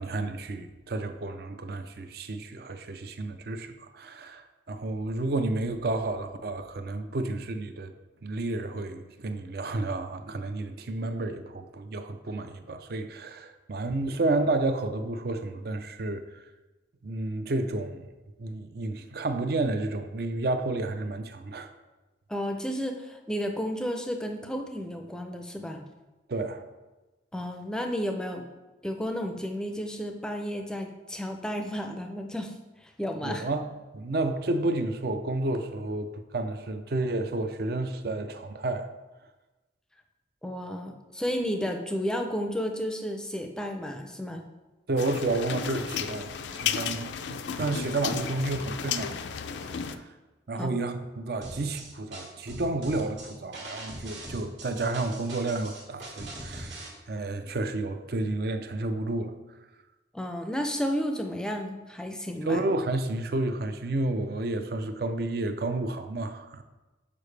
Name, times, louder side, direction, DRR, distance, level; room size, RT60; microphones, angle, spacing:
voice 1, 0.0-7.9 8.2-16.2 17.0-18.1 18.4-21.7 26.3-26.6 33.2-33.7 33.9-38.9 44.9-49.4 49.6-50.0 50.5-59.3 62.5-66.6, right 2 dB, 55° right, 8 dB, 0.5 m, -31 dB
voice 2, 22.3-25.8 27.3-28.5 28.8-32.5 32.8-33.5 40.4-44.4 50.5-50.7 60.1-62.6, equal, 5° left, 4 dB, 0.5 m, -32 dB
sound 1, 45.0-50.0, left 7 dB, 75° left, 0.4 m, -33 dB
sound 2, 51.4-56.9, right 1 dB, 75° right, 1.7 m, -41 dB
6.8 x 4.8 x 3.3 m, 1.1 s
head